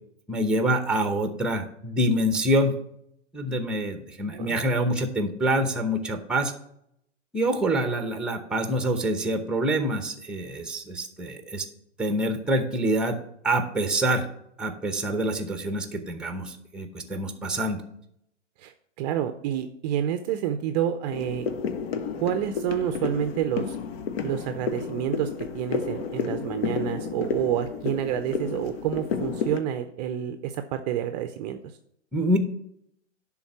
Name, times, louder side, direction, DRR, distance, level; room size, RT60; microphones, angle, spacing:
voice 1, 0.3-2.7 3.3-6.5 7.3-11.7 12.0-13.2 13.4-14.3 14.6-17.8 32.1-32.4, right 1 dB, ahead, 7 dB, 0.8 m, -26 dB
voice 2, 4.3-4.6 18.6-21.5 22.2-23.8 24.2-31.6, right 10 dB, 35° right, 9 dB, 0.5 m, -29 dB
sound 1, 21.1-29.6, left 6 dB, 50° left, 0.9 m, -31 dB
10.5 x 3.8 x 6.0 m, 0.74 s
hypercardioid pair, 115°, 37 cm